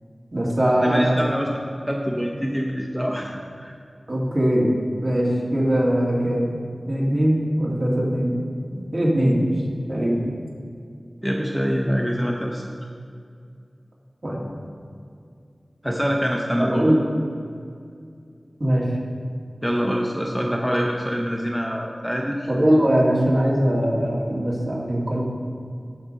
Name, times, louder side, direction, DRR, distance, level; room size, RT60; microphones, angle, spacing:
voice 1, 0.3-1.1 4.1-4.7 5.0-6.5 6.9-8.3 8.7-9.5 9.9-10.2 14.2-14.4 16.6-17.0 18.6-18.9 22.5-25.2, equal, 55° right, -5 dB, 2.2 m, -21 dB
voice 2, 0.8-3.7 11.2-12.7 15.8-17.0 19.6-22.5, equal, 5° right, -1 dB, 0.8 m, -25 dB
14.0 x 5.0 x 4.1 m, 2.3 s
wide cardioid pair, 45°, 0 cm